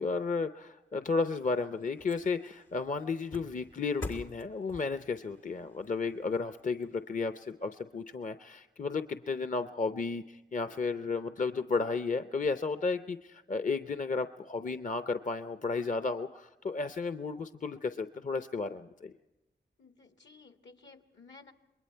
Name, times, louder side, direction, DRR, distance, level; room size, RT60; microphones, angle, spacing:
voice 1, 0.0-19.1, left 4 dB, 45° left, 10 dB, 0.7 m, -33 dB
sound 1, 1.0-7.5 8.0-8.1, left 2 dB, 90° left, 1.6 m, -48 dB
voice 2, 19.8-21.5, left 4 dB, 70° left, 6 dB, 1.6 m, -55 dB
27.5 x 21.0 x 4.5 m, 1.0 s
cardioid pair, 40°, 19 cm